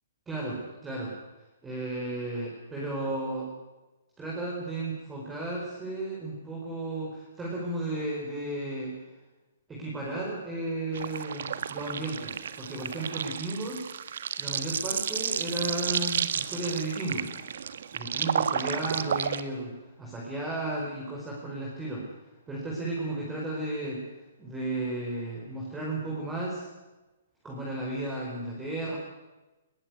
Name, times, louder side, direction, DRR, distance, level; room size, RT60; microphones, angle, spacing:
voice 1, 0.3-1.1 1.6-3.5 4.2-9.0 9.7-13.9 14.4-17.3 17.9-19.7 20.0-22.1 22.5-24.0 24.4-26.7 27.4-29.0, right 2 dB, 10° right, -3 dB, 4.6 m, -34 dB
sound 1, 10.9-19.4, right 7 dB, 65° right, 1.5 m, -32 dB
21.0 x 18.0 x 9.6 m, 1.1 s
hypercardioid pair, 160°, 0 cm